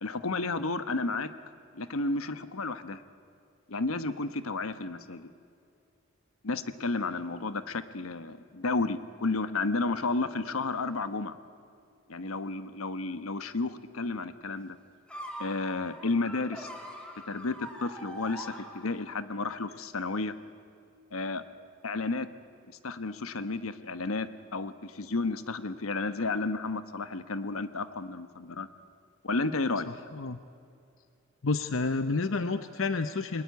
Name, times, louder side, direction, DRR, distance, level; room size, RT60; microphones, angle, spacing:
voice 1, 0.0-1.3 1.7-3.0 3.7-5.3 6.4-11.3 12.1-14.8 15.4-16.7 17.3-20.3 21.1-21.4 21.8-22.3 22.8-28.7 29.2-29.9, left 3 dB, 90° left, 11 dB, 1.1 m, -32 dB
sound 1, 15.1-19.2, equal, 5° left, 2.9 m, -43 dB
voice 2, 31.4-33.4, left 3 dB, 70° left, 10 dB, 0.8 m, -29 dB
28.5 x 20.5 x 9.3 m, 2.5 s
head